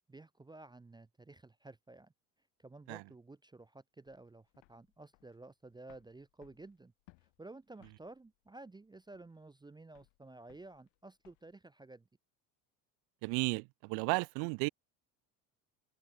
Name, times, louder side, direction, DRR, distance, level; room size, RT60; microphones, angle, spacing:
voice 1, 0.1-2.1 2.6-6.9 7.4-12.1, right 2 dB, 10° right, 0.7 m, -53 dB
sound 1, 4.1-11.5, left 32 dB, 75° left, 7.3 m, -68 dB
voice 2, 13.2-14.7, right 36 dB, 65° right, 0.6 m, -34 dB
supercardioid pair, 95°, 44 cm